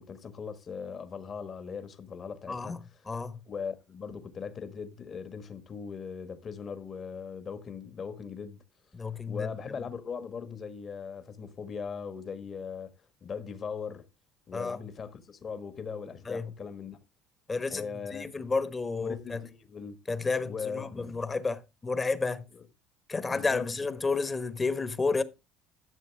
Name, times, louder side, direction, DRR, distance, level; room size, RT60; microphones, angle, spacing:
voice 1, 0.0-3.1 3.5-8.6 9.3-12.9 13.2-14.1 14.5-17.0 17.7-18.3 19.0-20.0 20.4-21.0 22.5-22.6 23.1-23.9, left 6 dB, 40° left, 1.4 m, -39 dB
voice 2, 2.5-3.4 8.9-9.5 14.5-14.8 16.3-16.5 17.5-17.9 18.1-19.4 20.1-22.4 23.1-25.2, left 4 dB, 25° left, 1.1 m, -31 dB
12.5 x 6.7 x 3.4 m
supercardioid pair, 85°, 0 cm